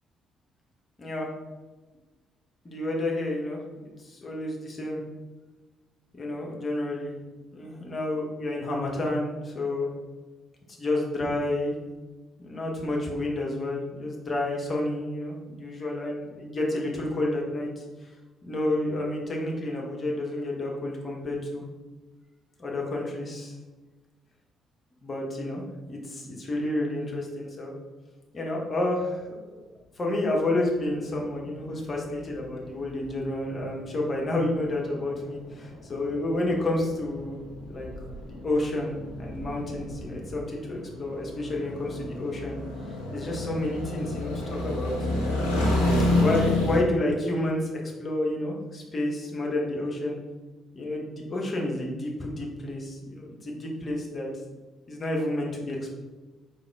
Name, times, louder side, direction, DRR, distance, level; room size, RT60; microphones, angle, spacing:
voice 1, 1.0-1.3 2.6-3.6 4.0-5.0 6.1-7.1 7.5-9.9 10.8-11.7 12.4-17.8 18.4-21.6 22.6-23.5 25.0-27.7 28.3-29.6 30.0-37.4 37.7-37.9 38.2-42.6 43.1-45.3 46.2-47.7 48.0-50.2 50.7-54.3 54.9-55.9, left 1 dB, 35° left, -1 dB, 1.1 m, -30 dB
sound 1, 30.7-46.8, left 1 dB, 80° left, 0.7 m, -30 dB
4.1 x 3.3 x 3.5 m, 1.2 s
figure-of-eight pair, 45°, 0 cm